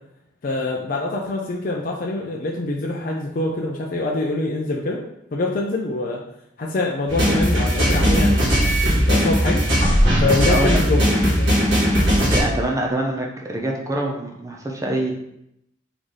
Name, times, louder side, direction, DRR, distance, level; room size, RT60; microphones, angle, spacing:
voice 1, 0.4-5.0 5.3-6.2 6.6-9.6 10.2-11.1 11.4-11.6, left 2 dB, 45° left, -2 dB, 0.4 m, -25 dB
sound 1, 7.1-12.4, equal, 75° right, 1.5 m, -18 dB
voice 2, 12.3-15.1, right 1 dB, 15° right, 0 dB, 0.5 m, -25 dB
4.0 x 3.3 x 3.6 m, 0.79 s
head